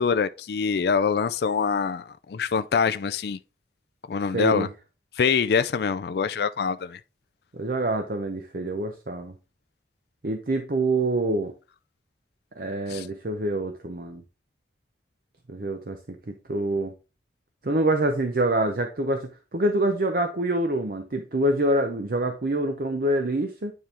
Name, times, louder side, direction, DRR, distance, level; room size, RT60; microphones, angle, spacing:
voice 1, 0.0-3.4 4.1-4.7 5.2-7.0 12.9-13.1, left 6 dB, 60° left, 0.4 m, -24 dB
voice 2, 4.3-4.7 7.5-9.3 10.2-11.5 12.6-14.2 15.5-16.9 17.6-23.7, right 1 dB, 55° right, 0.7 m, -26 dB
9.4 x 4.5 x 3.4 m
head